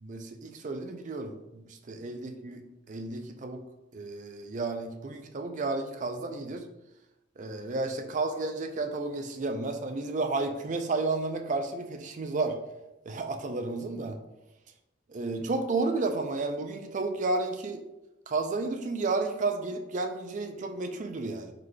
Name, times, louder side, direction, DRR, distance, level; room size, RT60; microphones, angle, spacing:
voice 1, 0.0-3.6 3.9-6.6 7.4-12.6 13.1-14.2 15.1-17.8 18.3-21.5, right 3 dB, 40° right, 6 dB, 0.4 m, -32 dB
4.8 x 3.9 x 2.2 m, 0.95 s
head